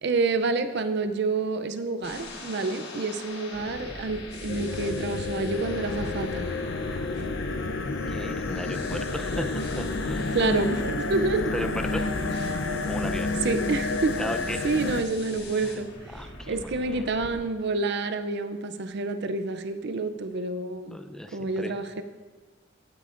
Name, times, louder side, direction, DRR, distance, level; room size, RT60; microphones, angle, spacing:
voice 1, 0.0-6.5 10.3-11.5 13.4-14.1 14.6-15.9 16.5-21.0 21.3-22.0, right 3 dB, 60° right, 9 dB, 0.5 m, -28 dB
sound 1, 2.0-17.3, left 2 dB, 55° left, 1.7 m, -42 dB
sound 2, 4.5-15.0, left 3 dB, 75° left, 0.6 m, -30 dB
voice 2, 8.1-9.5 9.8-10.3 11.5-12.1 12.9-13.4 14.2-14.6 15.6-15.7 16.1-17.1 20.9-21.8, left 1 dB, 5° left, 7 dB, 0.5 m, -35 dB
15.5 x 9.1 x 2.5 m, 1.3 s
head